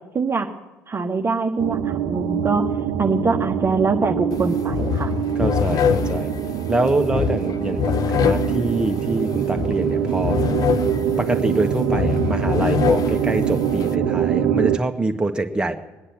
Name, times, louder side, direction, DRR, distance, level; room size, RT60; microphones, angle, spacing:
voice 1, 0.1-0.5 0.9-2.7 3.0-5.1, right 4 dB, 30° right, 2 dB, 1.3 m, -23 dB
sound 1, 1.6-14.8, right 9 dB, 70° right, 0.9 m, -24 dB
sound 2, 4.3-4.4 4.7-13.9, left 8 dB, 50° left, 0.6 m, -25 dB
voice 2, 5.3-6.3 6.7-10.4 11.2-15.7, right 2 dB, 10° right, 4 dB, 1.6 m, -25 dB
21.5 x 10.0 x 6.1 m, 1.2 s
hypercardioid pair, 50°, 8 cm